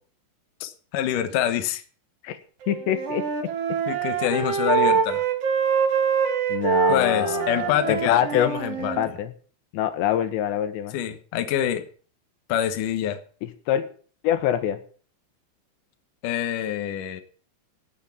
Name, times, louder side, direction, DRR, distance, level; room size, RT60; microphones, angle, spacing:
voice 1, 0.6-1.8 3.9-5.2 6.9-9.0 10.9-11.8 12.5-13.2 16.2-17.2, left 10 dB, 90° left, 8 dB, 1.8 m, -26 dB
Wind instrument woodwind instrument, 2.6-9.1, right 6 dB, 70° right, 1.5 m, -24 dB
voice 2, 2.7-3.2 6.5-9.3 9.7-11.0 13.4-13.8 14.2-14.8, left 11 dB, 70° left, 10 dB, 3.1 m, -25 dB
18.0 x 7.2 x 7.1 m, 0.44 s
omnidirectional pair, 5.7 m